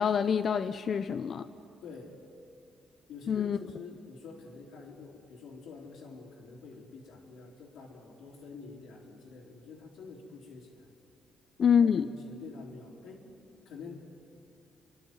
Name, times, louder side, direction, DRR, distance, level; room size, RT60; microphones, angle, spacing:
voice 1, 0.0-1.4 3.3-3.6 11.6-12.1, left 7 dB, 50° left, 10 dB, 0.6 m, -26 dB
voice 2, 1.8-2.2 3.1-10.9 11.8-13.3 13.6-14.1, left 4 dB, 85° left, -6 dB, 3.0 m, -47 dB
29.5 x 11.5 x 9.3 m, 2.6 s
cardioid pair, 90°, 0 cm